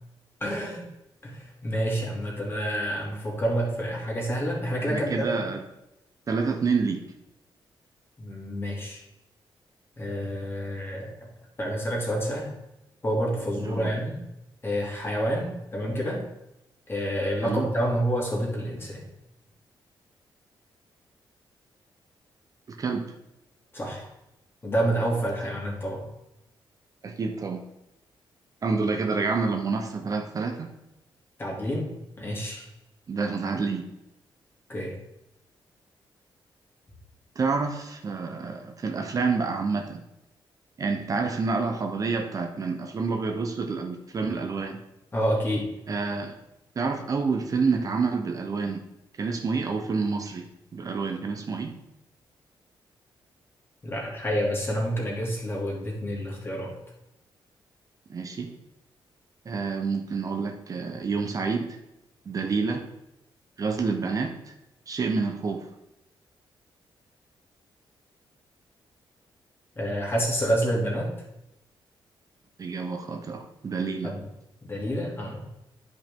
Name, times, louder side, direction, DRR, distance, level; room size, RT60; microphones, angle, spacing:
voice 1, 0.4-0.8 1.2-5.3 8.2-9.0 10.0-11.1 11.6-12.5 13.0-14.2 14.6-16.2 16.9-19.0 23.7-24.1 24.6-26.1 31.4-31.9 32.2-32.7 34.7-34.9 45.1-45.7 53.8-56.7 69.8-71.1 74.0-74.2 74.6-75.5, equal, 25° left, -2 dB, 2.4 m, -28 dB
voice 2, 4.9-5.6 6.3-7.0 13.6-14.0 17.4-17.7 22.7-23.1 27.0-27.6 28.6-30.7 33.1-33.8 37.4-40.0 40.8-44.8 45.9-46.3 46.8-48.8 49.2-50.4 50.7-51.7 58.1-58.5 59.5-61.8 62.3-62.8 63.6-64.3 64.9-65.6 72.6-74.1, right 4 dB, 40° right, 4 dB, 0.8 m, -28 dB
9.8 x 5.2 x 3.6 m, 0.90 s
cardioid pair, 110°, 9 cm